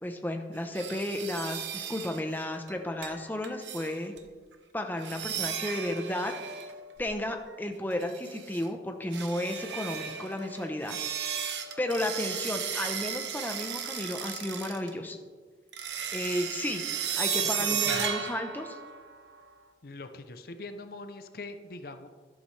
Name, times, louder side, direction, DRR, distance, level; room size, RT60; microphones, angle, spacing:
voice 1, 0.0-4.1 4.7-6.3 7.0-11.0 11.8-15.2 16.1-16.8 17.2-18.8, left 1 dB, 10° left, 4 dB, 0.8 m, -33 dB
sound 1, 0.7-2.2 2.7-2.8 3.0-3.2 3.4-4.2 5.0-7.2 7.9-8.7 9.1-14.9 15.7-19.4, right 8 dB, 80° right, 1.0 m, -35 dB
voice 2, 17.6-18.1 19.8-22.1, left 2 dB, 55° left, 8 dB, 0.7 m, -42 dB
12.5 x 11.5 x 3.3 m, 1.5 s
head